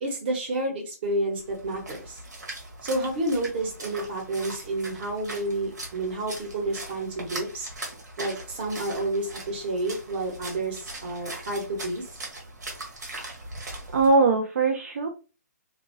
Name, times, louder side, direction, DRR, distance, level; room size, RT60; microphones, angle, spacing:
voice 1, 0.0-2.2 2.8-7.7 8.2-12.0, right 2 dB, 35° right, 0 dB, 1.1 m, -30 dB
Splash splatter, 1.4-14.1, right 2 dB, 80° right, 1.4 m, -40 dB
voice 2, 13.6-15.1, right 3 dB, 55° right, 2 dB, 0.5 m, -22 dB
2.7 x 2.6 x 2.6 m, 0.33 s
hypercardioid pair, 165°, 9 cm